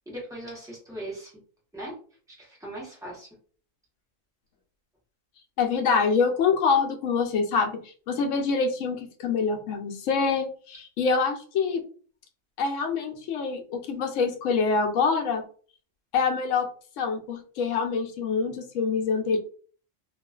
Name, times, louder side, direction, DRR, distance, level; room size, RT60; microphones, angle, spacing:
voice 1, 0.1-1.4 1.7-2.0 2.4-3.3, right 1 dB, 5° right, -4 dB, 0.8 m, -39 dB
voice 2, 5.6-11.8 12.6-15.4 16.1-16.7 17.0-19.4, left 5 dB, 75° left, 5 dB, 0.9 m, -25 dB
2.4 x 2.4 x 2.3 m, 0.43 s
omnidirectional pair, 1.3 m